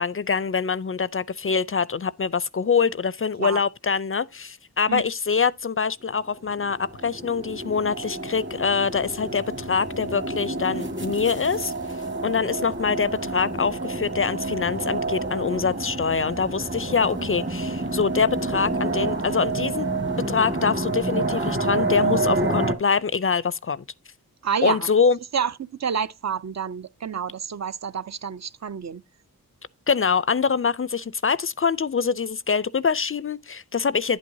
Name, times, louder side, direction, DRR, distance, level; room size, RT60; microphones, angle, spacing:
voice 1, 0.0-11.7 12.2-19.9 20.3-23.8 24.6-25.2 29.9-34.2, left 5 dB, 40° left, 0.4 m, -24 dB
sound 1, 6.5-22.7, right 2 dB, 35° right, 1.7 m, -28 dB
voice 2, 24.4-24.9 25.3-25.5 25.8-29.0, right 7 dB, 50° right, 0.5 m, -28 dB
10.0 x 8.4 x 2.7 m
wide cardioid pair, 60°, 36 cm